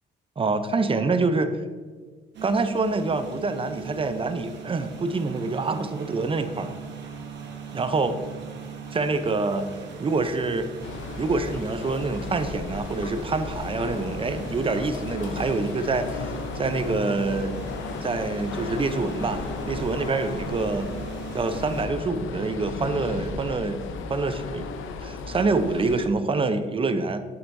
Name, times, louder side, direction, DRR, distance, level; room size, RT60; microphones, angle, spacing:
voice 1, 0.4-1.6 2.4-6.7 7.7-8.2 8.9-9.7 10.0-10.7 11.2-17.5 18.0-20.9 21.3-23.8 24.1-24.7 25.0-27.2, right 3 dB, 25° right, 9 dB, 0.7 m, -26 dB
sound 1, 2.3-21.9, right 5 dB, 65° right, 1.3 m, -40 dB
sound 2, 10.8-26.1, left 4 dB, 80° left, 0.7 m, -35 dB
7.9 x 7.9 x 2.7 m, 1.5 s
cardioid pair, 90°, 20 cm